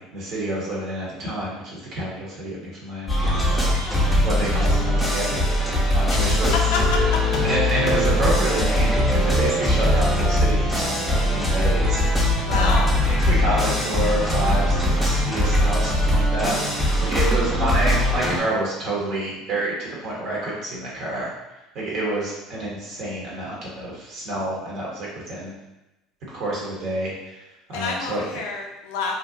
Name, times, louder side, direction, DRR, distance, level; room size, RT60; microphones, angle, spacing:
voice 1, 0.0-6.5 7.4-25.6 26.3-28.2, right 1 dB, 55° right, -5 dB, 0.9 m, -29 dB
sound 1, 3.1-18.4, left 1 dB, 10° left, 0.6 m, -21 dB
voice 2, 6.7-7.2 12.4-13.0 27.7-29.1, left 4 dB, 70° left, 1 dB, 0.3 m, -28 dB
2.5 x 2.0 x 2.6 m, 0.99 s
hypercardioid pair, 70°, 0 cm